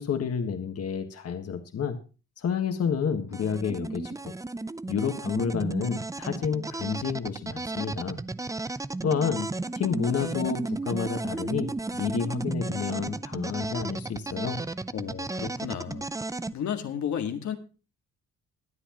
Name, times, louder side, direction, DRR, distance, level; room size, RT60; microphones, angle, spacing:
voice 1, 0.0-2.0 2.4-4.3 4.9-8.2 9.0-14.6, left 6 dB, 55° left, 6 dB, 1.6 m, -30 dB
sound 1, 3.3-16.5, right 2 dB, 10° right, 0.5 m, -34 dB
voice 2, 14.9-16.1 16.5-17.6, left 8 dB, 70° left, 5 dB, 1.8 m, -32 dB
22.5 x 8.1 x 3.0 m, 0.33 s
cardioid pair, 90°, 30 cm